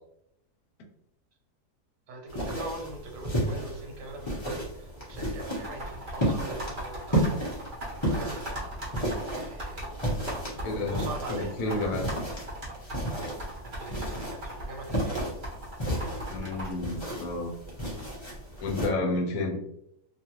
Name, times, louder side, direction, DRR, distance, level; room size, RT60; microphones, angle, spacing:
voice 1, 2.1-7.4 8.0-8.6 9.0-9.9 10.5-12.1 13.6-15.3, right 2 dB, 85° right, 2 dB, 1.2 m, -42 dB
sound 1, 2.3-18.9, right 1 dB, 25° left, 0.6 m, -33 dB
sound 2, 5.5-16.7, right 1 dB, 40° right, 0.8 m, -39 dB
voice 2, 10.6-11.0 11.3-12.1 16.3-17.5 18.6-19.6, left 2 dB, 70° left, 1 dB, 1.1 m, -30 dB
2.7 x 2.4 x 2.9 m, 0.78 s
omnidirectional pair, 1.8 m